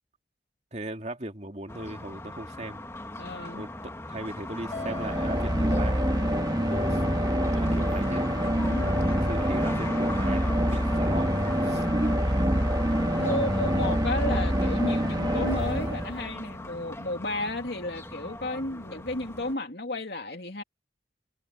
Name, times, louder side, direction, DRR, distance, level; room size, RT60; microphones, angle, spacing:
voice 1, 0.7-2.8 3.5-3.7 4.1-6.5 6.9-8.2 8.8-11.3 11.6-12.5, right 1 dB, 40° right, 2.4 m, -38 dB
sound 1, 1.7-19.5, left 1 dB, 15° left, 1.8 m, -38 dB
voice 2, 3.2-3.6 8.6-9.1 11.8-12.1 13.1-20.6, left 2 dB, 60° left, 2.9 m, -33 dB
sound 2, 4.6-16.5, equal, 25° right, 1.6 m, -26 dB
sound 3, 4.7-9.4, left 2 dB, 35° left, 1.8 m, -42 dB
head